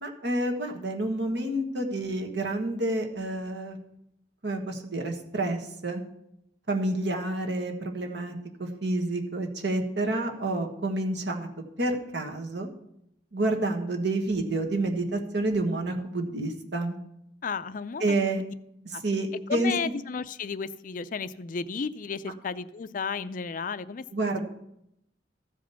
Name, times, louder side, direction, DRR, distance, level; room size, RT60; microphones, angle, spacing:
voice 1, 0.0-3.8 4.4-6.0 6.7-11.5 11.8-12.7 13.3-17.0 18.0-18.4 18.9-19.9 24.1-24.4, right 2 dB, 65° right, 3 dB, 1.4 m, -29 dB
voice 2, 17.4-18.5 18.9-19.0 19.5-24.0, left 5 dB, 45° left, 13 dB, 0.4 m, -33 dB
14.0 x 5.1 x 7.0 m, 0.80 s
head